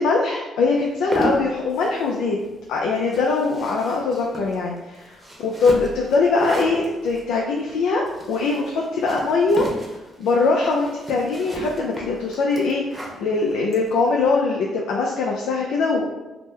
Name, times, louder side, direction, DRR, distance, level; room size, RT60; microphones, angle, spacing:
voice 1, 0.0-2.4 2.7-9.7 10.2-16.1, left 3 dB, 85° left, -1 dB, 0.3 m, -22 dB
sound 1, 0.8-14.3, right 1 dB, 20° right, 0.7 m, -34 dB
2.8 x 2.1 x 3.6 m, 1.1 s
cardioid pair, 90°, 0 cm